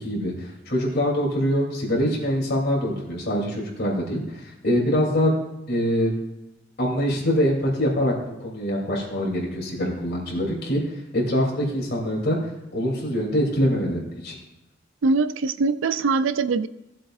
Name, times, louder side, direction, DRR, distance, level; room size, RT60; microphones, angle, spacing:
voice 1, 0.0-5.3 5.7-6.2 6.8-8.1 8.4-10.8 11.1-12.4 12.7-14.4, equal, 55° left, -2 dB, 3.1 m, -24 dB
voice 2, 15.0-16.7, right 4 dB, 65° right, 14 dB, 0.4 m, -22 dB
16.5 x 7.6 x 2.5 m, 0.92 s
head